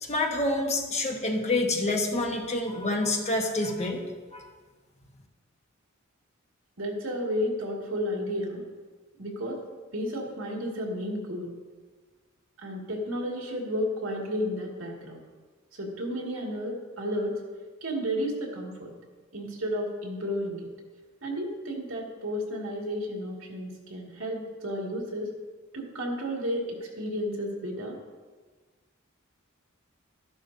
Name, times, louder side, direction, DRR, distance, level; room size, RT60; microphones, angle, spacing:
voice 1, 0.0-4.0 4.3-4.5, left 2 dB, 35° left, 1 dB, 1.3 m, -27 dB
voice 2, 6.8-8.6 9.2-9.6 9.9-11.5 12.6-15.2 15.7-17.4 17.8-18.9 19.3-20.7 21.2-25.3 25.7-28.0, equal, 75° right, -1 dB, 2.3 m, -32 dB
13.0 x 11.5 x 2.8 m, 1.4 s
head